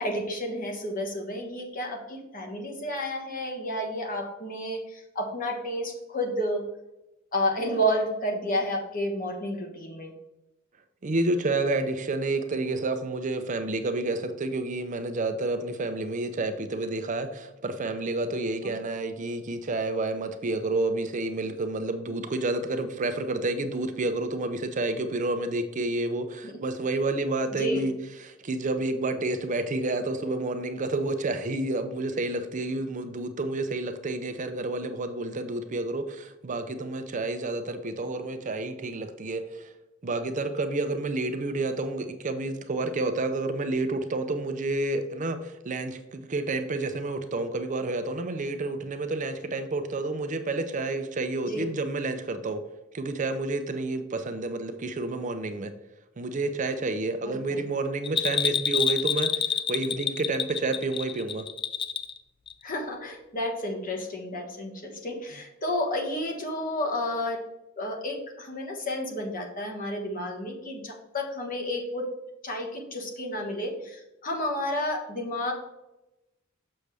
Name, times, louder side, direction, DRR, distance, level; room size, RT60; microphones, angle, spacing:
voice 1, 0.0-6.6 7.3-10.1 26.4-26.5 27.5-27.8 51.5-51.7 57.2-57.6 62.6-67.4 67.8-72.1 72.4-75.5, equal, 45° left, 1 dB, 1.4 m, -31 dB
voice 2, 11.0-39.7 40.0-52.6 52.9-55.7 56.2-61.5, right 2 dB, 40° right, 9 dB, 0.5 m, -29 dB
Bell, 58.0-62.2 62.5-62.6, left 7 dB, 25° left, 0.4 m, -27 dB
6.6 x 6.3 x 3.4 m, 0.94 s
head